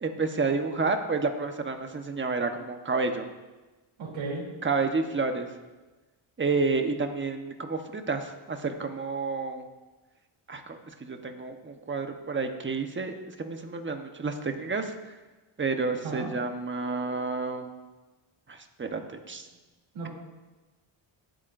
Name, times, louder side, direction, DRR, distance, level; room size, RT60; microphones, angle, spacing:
voice 1, 0.0-3.3 4.6-5.5 6.4-9.6 10.5-14.9 15.6-17.7 18.5-19.5, right 4 dB, 25° right, 5 dB, 1.2 m, -30 dB
voice 2, 4.0-4.4 15.9-16.3 19.9-20.1, right 3 dB, 70° right, -3 dB, 3.4 m, -35 dB
17.5 x 9.0 x 2.7 m, 1.2 s
cardioid pair, 95°, 48 cm